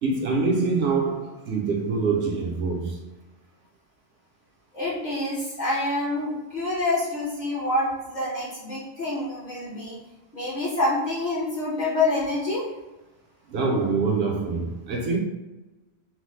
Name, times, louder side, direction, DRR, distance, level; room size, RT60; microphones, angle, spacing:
voice 1, 0.0-3.0 13.5-15.2, right 4 dB, 65° right, 0.8 m, -25 dB
voice 2, 4.7-10.0 10.3-12.6, left 2 dB, 45° left, 0.8 m, -27 dB
3.1 x 2.0 x 3.1 m
omnidirectional pair, 1.2 m